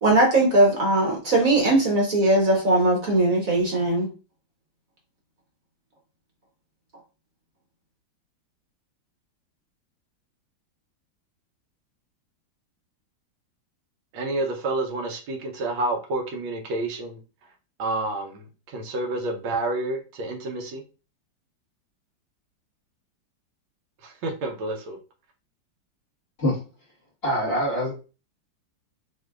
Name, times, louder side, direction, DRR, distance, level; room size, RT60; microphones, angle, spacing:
voice 1, 0.0-4.1, right 2 dB, 50° right, 1.2 m, -20 dB
voice 2, 14.1-17.2 17.8-20.8 24.0-25.0, right 2 dB, 80° right, 1.6 m, -29 dB
voice 3, 27.2-27.9, equal, 30° left, 1.6 m, -24 dB
6.1 x 2.7 x 2.4 m
omnidirectional pair, 2.1 m